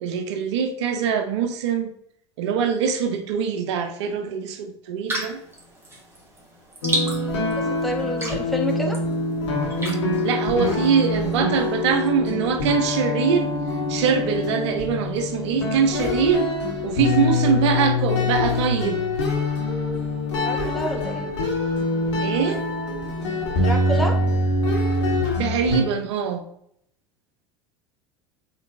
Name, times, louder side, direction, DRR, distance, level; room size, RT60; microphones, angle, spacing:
voice 1, 0.0-1.9 2.4-5.4 10.2-13.5 13.9-16.5 16.8-19.0 22.2-22.6 25.4-26.4, right 6 dB, 75° right, 7 dB, 0.6 m, -23 dB
sound 1, 5.1-11.4, right 1 dB, 15° right, 1.7 m, -34 dB
sound 2, 6.8-25.8, left 2 dB, 80° left, 1.2 m, -24 dB
voice 2, 7.8-9.0 20.4-21.3 23.6-24.2, equal, ahead, 1 dB, 1.0 m, -28 dB
4.5 x 3.9 x 2.6 m, 0.71 s
hypercardioid pair, 80°, 15 cm